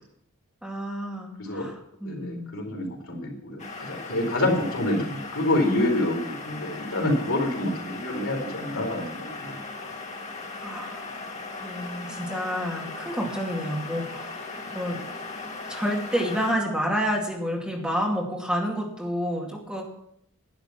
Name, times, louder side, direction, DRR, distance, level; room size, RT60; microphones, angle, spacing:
voice 1, 0.6-1.7 2.0-2.6 10.6-11.2 11.6-14.4 14.7-15.0 15.7-19.8, equal, 5° right, -2 dB, 2.5 m, -29 dB
voice 2, 2.0-9.9, left 1 dB, 65° left, 0 dB, 4.0 m, -27 dB
sound 1, 3.6-16.5, left 3 dB, 35° left, 2.0 m, -38 dB
11.5 x 10.5 x 6.0 m, 0.71 s
head